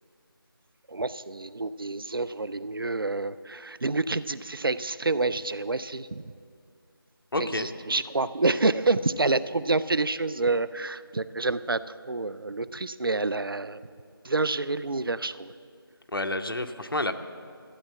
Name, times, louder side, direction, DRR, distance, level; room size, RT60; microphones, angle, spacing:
voice 1, 0.9-6.3 7.4-11.8 12.1-13.8 14.2-15.5, right 3 dB, 65° right, 15 dB, 0.5 m, -28 dB
voice 2, 7.3-7.7 16.1-17.1, left 1 dB, 65° left, 8 dB, 0.9 m, -29 dB
13.0 x 8.6 x 7.6 m, 2.3 s
figure-of-eight pair, 165°, 13 cm